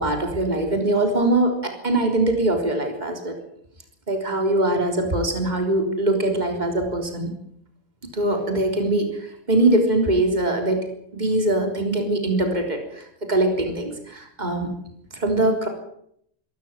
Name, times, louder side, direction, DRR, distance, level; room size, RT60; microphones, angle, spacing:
voice 1, 0.0-3.4 4.1-7.3 8.1-14.7 15.1-15.7, right 1 dB, 35° right, 3 dB, 3.8 m, -22 dB
25.5 x 13.5 x 9.2 m, 0.71 s
omnidirectional pair, 1.3 m